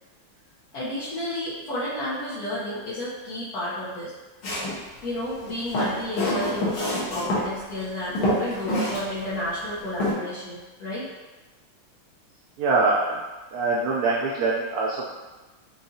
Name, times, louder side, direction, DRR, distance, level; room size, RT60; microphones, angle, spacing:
voice 1, 0.7-4.1 5.0-11.1, left 1 dB, 55° left, -11 dB, 1.3 m, -31 dB
Walk footsteps, 4.4-4.8 5.5-7.4 7.8-7.9 8.1-9.0 9.3-9.4 10.0-10.1, left 1 dB, 80° left, 1.9 m, -26 dB
voice 2, 12.6-13.2 13.5-15.1, right 3 dB, 90° right, -4 dB, 0.8 m, -23 dB
5.5 x 2.5 x 2.7 m, 1.2 s
omnidirectional pair, 2.2 m